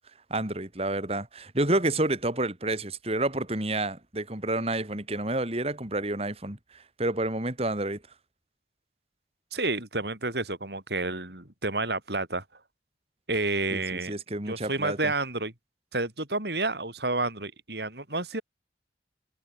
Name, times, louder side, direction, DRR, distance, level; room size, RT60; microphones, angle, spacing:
voice 1, 0.3-8.0 13.7-15.1, right 2 dB, 35° right, 3.2 m, -29 dB
voice 2, 9.5-12.4 13.3-14.1 14.5-15.5 15.9-18.4, right 2 dB, 65° right, 6.4 m, -30 dB
head